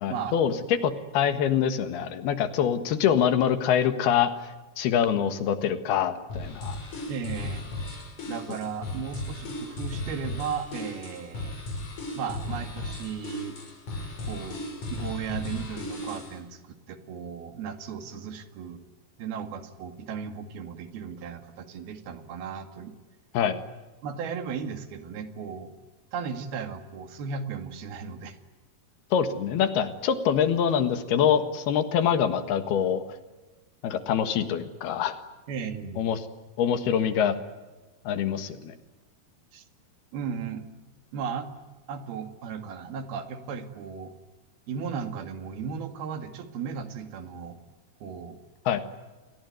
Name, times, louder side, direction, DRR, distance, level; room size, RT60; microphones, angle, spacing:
voice 1, 0.0-6.8 23.3-23.6 29.1-33.0 33.8-35.2 36.0-36.2 36.6-37.4 38.1-38.8 48.7-48.8, left 8 dB, 75° left, 10 dB, 3.5 m, -25 dB
sound 1, 6.3-16.4, left 1 dB, 50° left, 6.9 m, -36 dB
voice 2, 7.1-7.6 7.9-11.6 12.1-13.6 14.2-14.6 14.9-18.8 19.2-22.9 24.0-25.7 26.1-28.4 35.5-36.0 39.5-39.6 40.1-40.7 41.1-41.5 41.9-44.1 44.7-47.6 48.0-48.4, right 6 dB, 75° right, 8 dB, 3.9 m, -36 dB
29.0 x 21.5 x 9.4 m, 1.2 s
omnidirectional pair, 4.5 m